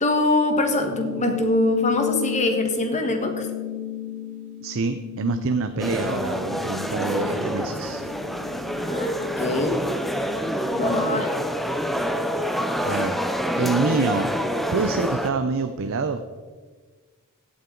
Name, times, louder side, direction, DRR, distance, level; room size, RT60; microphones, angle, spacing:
voice 1, 0.0-3.5 8.8-9.8 10.7-11.3, left 2 dB, 35° left, 5 dB, 1.5 m, -23 dB
sound 1, 0.7-11.6, left 10 dB, 20° right, 3.4 m, -35 dB
voice 2, 4.6-8.0 12.8-13.2 13.6-14.3 14.7-16.2, right 4 dB, 65° right, 8 dB, 0.6 m, -26 dB
Busy airport lobby language neutral Canada, 5.8-15.3, equal, ahead, 0.6 m, -27 dB
16.0 x 8.8 x 3.9 m, 1.4 s
head